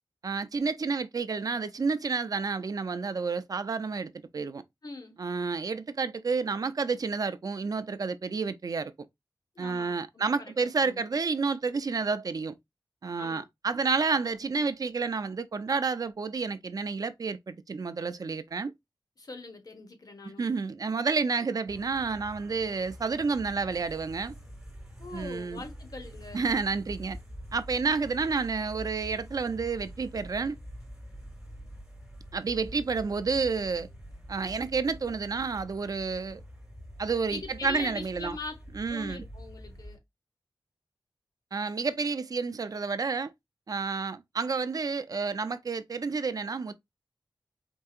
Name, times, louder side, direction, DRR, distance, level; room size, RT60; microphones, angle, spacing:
voice 1, 0.2-4.6 5.2-8.9 9.6-12.5 13.0-18.7 20.4-24.3 25.1-25.6 26.3-27.2 27.5-30.6 32.3-33.9 34.3-36.4 37.0-38.4 38.7-39.2 41.5-43.3 43.7-46.7, right 4 dB, 50° right, 0.5 m, -30 dB
voice 2, 4.8-5.2 9.5-11.0 13.2-13.5 19.2-20.5 25.0-26.4 37.3-38.6 38.9-40.0, left 3 dB, 50° left, 1.0 m, -42 dB
sound 1, 21.7-40.0, equal, 10° right, 1.7 m, -46 dB
4.6 x 2.7 x 2.4 m
wide cardioid pair, 90°, 8 cm